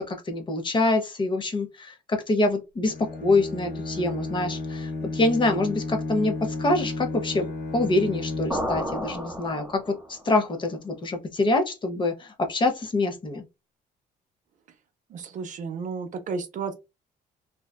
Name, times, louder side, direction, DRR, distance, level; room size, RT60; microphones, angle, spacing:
voice 1, 0.1-2.9 3.2-7.5 7.7-13.4, left 2 dB, 30° left, 0.6 m, -25 dB
Bowed string instrument, 2.8-8.8, left 3 dB, 60° left, 0.8 m, -33 dB
sound 1, 8.5-10.2, equal, 5° right, 0.8 m, -32 dB
voice 2, 15.1-16.7, right 5 dB, 50° right, 0.5 m, -32 dB
2.6 x 2.2 x 2.2 m
cardioid pair, 110°, 17 cm